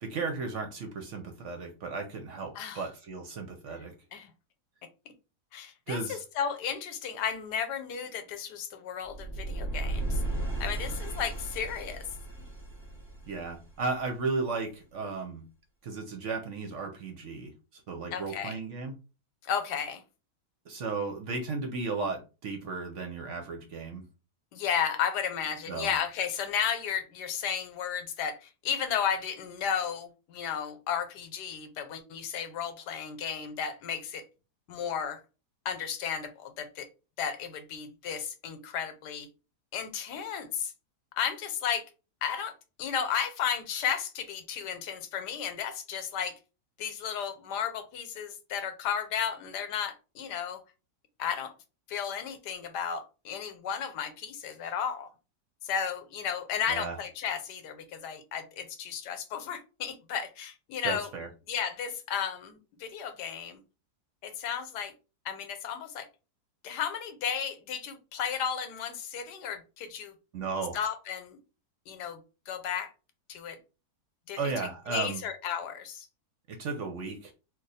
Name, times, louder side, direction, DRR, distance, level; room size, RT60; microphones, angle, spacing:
voice 1, 0.0-3.9 5.9-6.2 13.3-15.4 15.8-18.9 20.7-24.0 25.7-25.9 56.7-57.0 60.8-61.3 70.3-70.8 74.4-75.2 76.5-77.3, right 4 dB, 60° right, 0.8 m, -35 dB
voice 2, 5.5-10.2 10.6-12.0 18.1-18.6 19.5-20.0 24.5-34.2 34.7-35.2 35.6-36.9 37.2-39.3 39.7-40.7 41.2-41.8 42.2-46.4 46.8-50.6 51.2-51.5 51.9-55.1 55.6-61.1 61.5-63.6 64.2-64.9 65.2-66.1 66.6-70.1 70.7-71.4 71.9-72.2 72.5-72.9 73.3-73.6 74.3-74.4 74.9-76.1, left 8 dB, 90° left, 1.3 m, -33 dB
sound 1, 9.0-14.1, right 2 dB, 20° left, 1.0 m, -35 dB
3.0 x 2.3 x 4.0 m
omnidirectional pair, 1.7 m